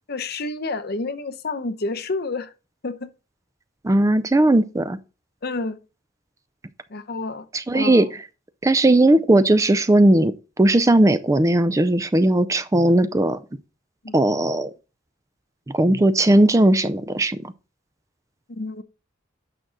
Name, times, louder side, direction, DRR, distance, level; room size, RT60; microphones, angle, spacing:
voice 1, 0.1-2.5 2.8-3.1 5.4-5.8 6.9-7.5 7.7-8.1 14.0-14.1 18.5-18.8, left 3 dB, 55° left, 0.8 m, -29 dB
voice 2, 3.8-5.0 7.5-8.1 8.6-10.3 10.6-13.4 14.1-14.7 15.7-17.4, right 1 dB, 15° right, 0.4 m, -17 dB
8.7 x 6.2 x 3.8 m
head